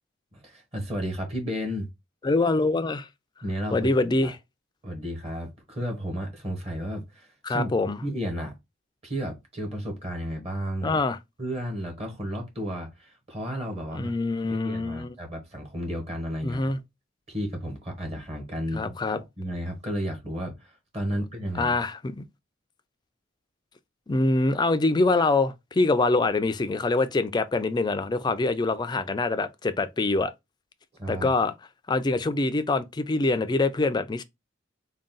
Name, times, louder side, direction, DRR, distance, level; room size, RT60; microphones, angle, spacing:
voice 1, 0.3-1.9 3.4-3.9 4.2-4.3 4.8-7.7 8.0-8.5 9.0-11.0 11.4-14.1 14.4-16.7 17.3-21.8 31.0-31.3, equal, 30° right, 1.1 m, -33 dB
voice 2, 2.2-3.1 3.7-4.3 7.4-8.0 10.8-11.2 13.9-15.2 16.4-16.8 18.7-19.2 21.5-22.2 24.1-30.3 31.1-31.5 31.9-34.2, left 3 dB, 20° left, 0.3 m, -24 dB
3.7 x 2.3 x 3.8 m
head